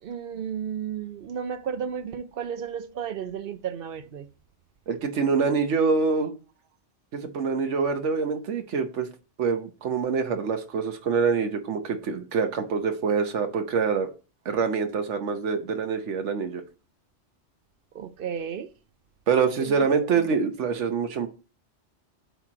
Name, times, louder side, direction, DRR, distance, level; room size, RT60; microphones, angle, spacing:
voice 1, 0.0-4.3 17.9-18.7 19.6-20.2, right 8 dB, 60° right, 0.7 m, -33 dB
voice 2, 4.9-6.3 7.1-9.1 9.4-14.1 14.4-16.6 19.3-21.3, right 5 dB, 85° right, 1.1 m, -25 dB
8.1 x 3.0 x 4.9 m
omnidirectional pair, 1.2 m